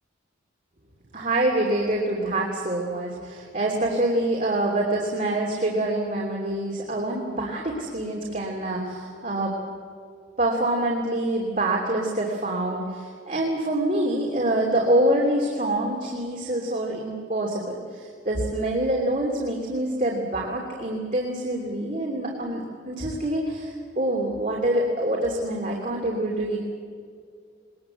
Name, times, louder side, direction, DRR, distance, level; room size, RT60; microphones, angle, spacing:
voice 1, 1.1-9.6 10.4-26.6, right 1 dB, 40° right, -2 dB, 3.0 m, -26 dB
22.0 x 20.5 x 8.1 m, 2.3 s
head